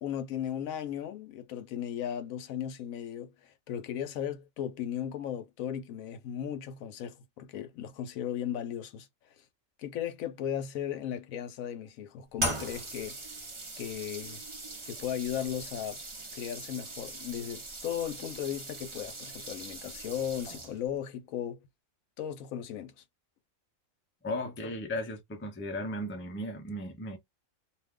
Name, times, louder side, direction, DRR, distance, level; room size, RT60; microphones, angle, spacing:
voice 1, 0.0-9.1 9.4-9.5 9.8-13.2 13.8-14.4 14.8-16.0 16.3-21.6 22.2-23.0, left 10 dB, 75° left, 1.0 m, -36 dB
sound 1, 12.4-21.0, right 1 dB, 30° right, 0.6 m, -40 dB
voice 2, 24.2-27.2, left 1 dB, 15° left, 0.4 m, -36 dB
2.6 x 2.3 x 3.5 m
omnidirectional pair, 1.4 m